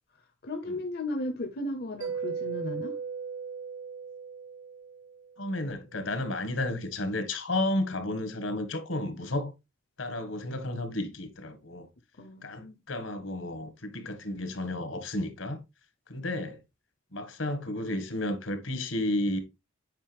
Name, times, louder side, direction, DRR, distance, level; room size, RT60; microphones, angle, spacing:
voice 1, 0.4-3.0 12.2-12.8, left 1 dB, 50° left, 0.9 m, -35 dB
Mallet percussion, 2.0-5.5, right 6 dB, 85° right, 0.8 m, -37 dB
voice 2, 5.4-9.5 10.0-11.9 12.4-15.6 16.1-16.6 17.1-19.4, left 1 dB, 75° left, 1.9 m, -32 dB
8.9 x 5.4 x 3.5 m
head